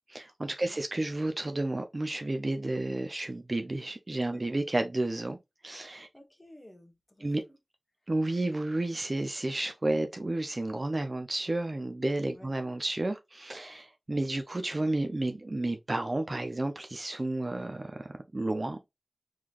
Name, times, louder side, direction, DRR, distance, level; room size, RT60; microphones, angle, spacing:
voice 1, 0.1-5.4 5.6-6.1 7.2-7.4 8.1-18.9, right 2 dB, 45° right, 0.5 m, -31 dB
voice 2, 6.1-7.6 12.3-12.5, left 1 dB, 20° left, 1.1 m, -54 dB
3.8 x 3.1 x 2.4 m
wide cardioid pair, 55°, 0 cm